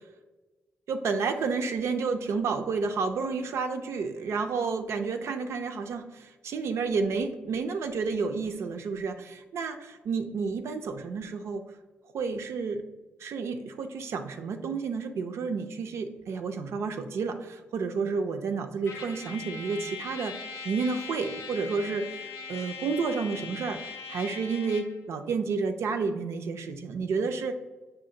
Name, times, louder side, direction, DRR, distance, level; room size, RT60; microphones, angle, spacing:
voice 1, 0.9-9.8 10.1-11.6 12.1-12.8 13.2-20.4 20.6-27.5, right 4 dB, 70° right, 6 dB, 0.3 m, -30 dB
Trumpet, 18.8-25.0, left 5 dB, 75° left, 0.4 m, -40 dB
5.2 x 2.4 x 3.7 m, 1.2 s
supercardioid pair, 50°, 5 cm